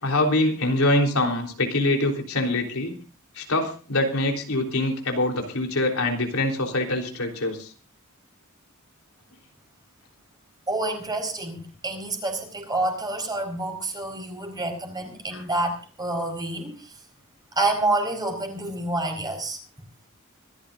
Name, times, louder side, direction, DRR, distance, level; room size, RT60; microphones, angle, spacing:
voice 1, 0.0-2.9 3.4-7.7 15.3-15.5, left 2 dB, 90° left, 2 dB, 3.6 m, -24 dB
voice 2, 10.7-17.0 17.5-19.6, right 2 dB, 20° right, 4 dB, 4.4 m, -28 dB
25.0 x 14.0 x 2.6 m, 0.37 s
head